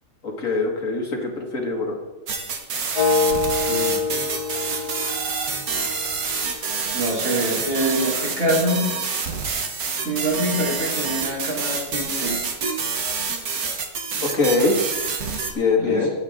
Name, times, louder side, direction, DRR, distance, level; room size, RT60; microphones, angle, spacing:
voice 1, 0.2-2.0 14.2-14.8 15.5-16.1, left 3 dB, 60° left, 1 dB, 2.3 m, -22 dB
sound 1, 2.3-15.5, right 5 dB, 80° right, 1.8 m, -27 dB
sound 2, 2.9-6.9, left 4 dB, 35° left, 0.5 m, -26 dB
voice 2, 3.7-4.0 6.9-8.9 10.0-12.4 15.8-16.1, right 1 dB, 65° right, -6 dB, 4.4 m, -25 dB
21.0 x 8.4 x 3.7 m, 1.2 s
omnidirectional pair, 1.5 m